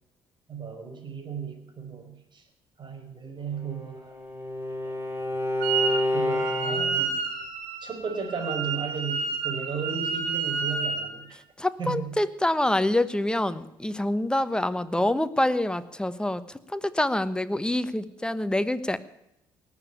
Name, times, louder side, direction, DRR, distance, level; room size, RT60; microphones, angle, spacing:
voice 1, 0.5-2.4 2.8-4.2 4.6-5.0 6.1-7.0 7.8-11.3 11.8-12.1 15.0-15.1, right 5 dB, 40° right, 4 dB, 4.9 m, -35 dB
Bowed string instrument, 3.5-7.1, left 1 dB, 20° right, 4.6 m, -29 dB
Wind instrument woodwind instrument, 5.6-6.0 6.3-11.1, right 5 dB, 70° right, 2.7 m, -30 dB
voice 2, 11.3-19.0, left 1 dB, 5° left, 13 dB, 1.2 m, -26 dB
19.0 x 7.3 x 9.1 m, 0.84 s
hypercardioid pair, 55°, 11 cm